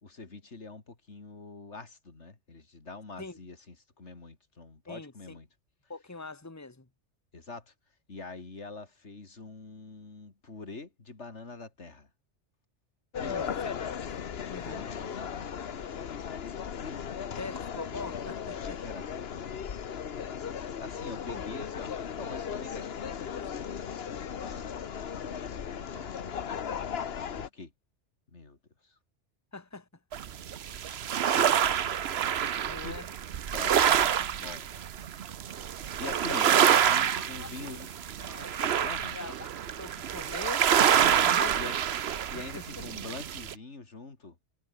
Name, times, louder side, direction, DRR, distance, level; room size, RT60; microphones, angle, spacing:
voice 1, 0.0-5.5 7.3-7.7 8.1-12.1 13.2-13.6 14.6-16.5 16.8-17.7 18.6-19.7 20.8-24.8 25.2-26.4 27.4-27.7 28.3-28.6 28.8-28.9 31.2-31.9 32.8-33.0 33.5-34.7 36.0-37.9 38.8-39.2 41.0-41.7 42.3-44.4, left 3 dB, 90° left, 3.1 m, -45 dB
voice 2, 4.9-5.4 5.9-6.9 13.2-14.0 14.5-14.9 17.4-18.8 21.3-21.4 29.5-29.9 32.6-33.1 36.0-36.5 37.1-37.9 38.2-39.5 39.8-40.7 41.2-41.5 42.6-42.8, left 3 dB, 15° left, 1.7 m, -42 dB
sound 1, 13.1-27.5, left 7 dB, 60° left, 1.2 m, -37 dB
sound 2, 30.1-43.5, right 9 dB, 65° right, 1.1 m, -27 dB
omnidirectional pair, 1.2 m